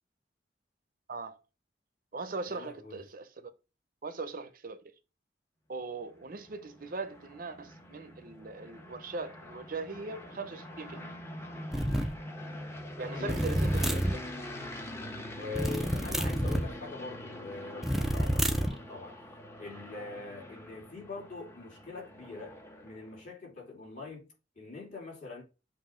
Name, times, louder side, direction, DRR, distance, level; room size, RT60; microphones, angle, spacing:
voice 1, 1.1-1.4 2.1-3.5 4.0-4.9 5.7-11.2 13.0-14.2 19.7-19.8, right 3 dB, 50° right, 0.7 m, -40 dB
voice 2, 2.5-3.0 13.0-13.4 15.4-19.2 19.6-22.5 22.8-24.3 24.5-25.4, left 3 dB, 45° left, 3.0 m, -43 dB
sound 1, 6.0-23.2, left 1 dB, 15° left, 1.0 m, -44 dB
sound 2, 11.7-12.1 13.3-14.2 15.5-16.7 17.8-18.8, right 1 dB, ahead, 0.5 m, -29 dB
7.6 x 2.7 x 5.0 m
head